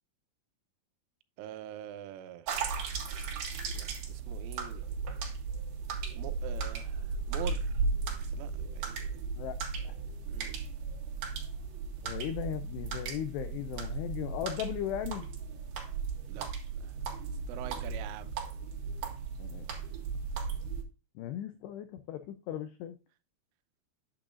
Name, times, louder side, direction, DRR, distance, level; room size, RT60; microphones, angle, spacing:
voice 1, 1.4-2.5 3.7-4.9 6.2-7.7 8.3-9.0 10.3-10.5 16.3-16.5 16.8-16.9 17.5-18.3, right 11 dB, 85° right, 3.3 m, -44 dB
sound 1, 2.5-20.8, right 5 dB, 60° right, 3.3 m, -36 dB
voice 2, 9.4-10.0 12.0-15.3 19.4-19.7 21.2-23.0, left 11 dB, 90° left, 2.4 m, -37 dB
8.9 x 8.7 x 2.5 m
omnidirectional pair, 5.6 m